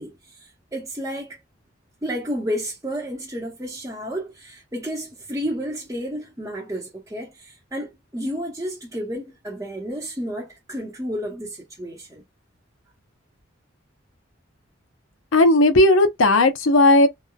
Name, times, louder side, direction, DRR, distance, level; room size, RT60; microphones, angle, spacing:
voice 1, 0.0-1.4 2.0-12.2, equal, 15° right, 0.8 m, -31 dB
voice 2, 15.3-17.1, left 2 dB, 80° left, 0.7 m, -15 dB
3.0 x 2.1 x 2.3 m
head